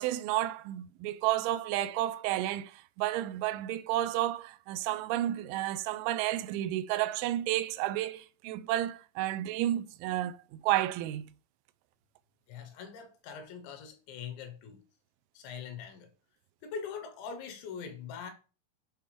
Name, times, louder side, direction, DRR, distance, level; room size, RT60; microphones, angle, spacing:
voice 1, 0.0-11.3, right 14 dB, 85° right, 2.9 m, -31 dB
voice 2, 12.5-14.8 15.3-16.1 16.6-18.3, left 6 dB, 80° left, 3.1 m, -42 dB
10.5 x 3.4 x 3.2 m
omnidirectional pair, 5.3 m